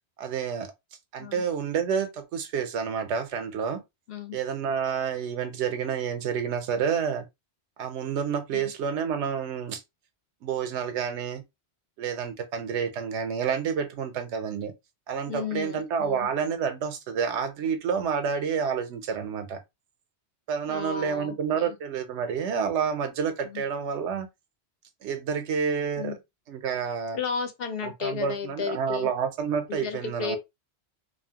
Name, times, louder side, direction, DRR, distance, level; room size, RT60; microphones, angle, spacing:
voice 1, 0.2-0.7 1.1-3.8 4.3-7.2 7.8-9.8 10.4-11.4 12.0-14.7 15.1-19.6 20.5-24.3 25.0-26.2 26.5-27.2 27.8-30.4, right 7 dB, 85° right, 0.9 m, -29 dB
voice 2, 4.1-4.4 8.5-8.7 15.3-16.3 20.6-21.8 23.4-23.6 26.0-26.2 27.1-29.1 29.7-30.4, left 6 dB, 65° left, 0.7 m, -34 dB
2.9 x 2.0 x 2.8 m
omnidirectional pair, 1.1 m